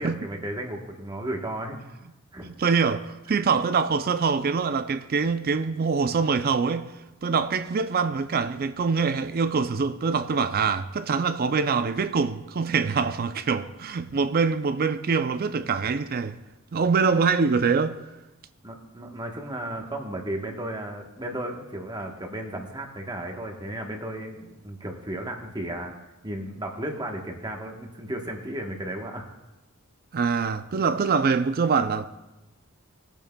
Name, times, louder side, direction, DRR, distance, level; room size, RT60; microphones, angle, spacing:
voice 1, 0.0-1.8 2.3-2.5 3.3-3.4 18.6-25.9 26.2-29.3, right 1 dB, 20° right, 1.1 m, -34 dB
voice 2, 2.4-6.9 7.2-16.4 16.7-18.0 30.1-32.1, right 5 dB, 45° right, 0.4 m, -24 dB
20.0 x 8.9 x 2.3 m
head